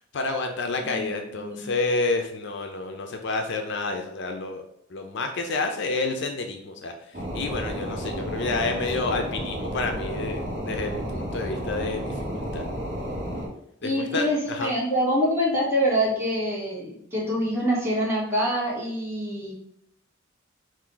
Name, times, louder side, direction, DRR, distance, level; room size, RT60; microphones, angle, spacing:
voice 1, 0.1-4.6 4.9-6.9 7.3-12.7 13.8-14.7, left 3 dB, 60° left, 4 dB, 0.5 m, -29 dB
voice 2, 1.4-1.7 13.8-19.5, equal, 15° right, -7 dB, 1.7 m, -25 dB
sound 1, 7.1-13.5, equal, 40° right, 1.0 m, -32 dB
4.6 x 2.5 x 3.8 m, 0.72 s
head